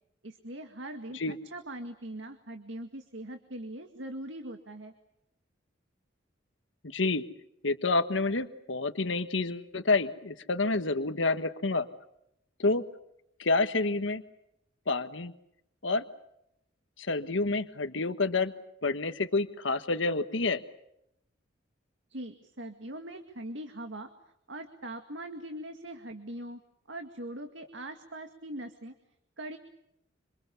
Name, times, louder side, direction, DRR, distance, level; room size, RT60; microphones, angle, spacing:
voice 1, 0.2-4.9 22.1-24.1 24.5-26.6 26.9-28.9 29.4-29.6, right 1 dB, 70° right, 6 dB, 2.1 m, -41 dB
voice 2, 6.8-7.2 7.6-11.9 12.6-12.8 13.4-14.2 14.9-15.3 15.8-16.0 17.0-18.5 18.8-20.6, left 3 dB, 75° left, 9 dB, 1.5 m, -28 dB
27.0 x 27.0 x 7.0 m, 0.78 s
head